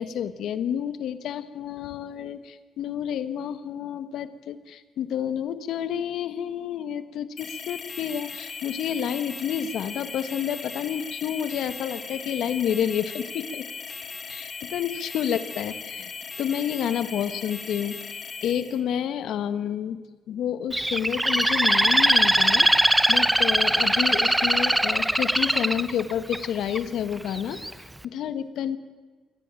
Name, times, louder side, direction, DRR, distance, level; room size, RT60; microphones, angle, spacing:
voice 1, 0.0-13.7 14.3-16.1 16.4-17.9 18.4-20.0 20.3-27.6 28.0-28.8, left 9 dB, 75° left, 13 dB, 1.4 m, -29 dB
sound 1, 7.4-18.8, left 5 dB, 45° left, 3.1 m, -38 dB
Bird, 20.7-26.8 27.3-27.7, right 1 dB, 5° right, 0.9 m, -21 dB
22.5 x 18.0 x 9.0 m, 1.4 s
cardioid pair, 100°, 0 cm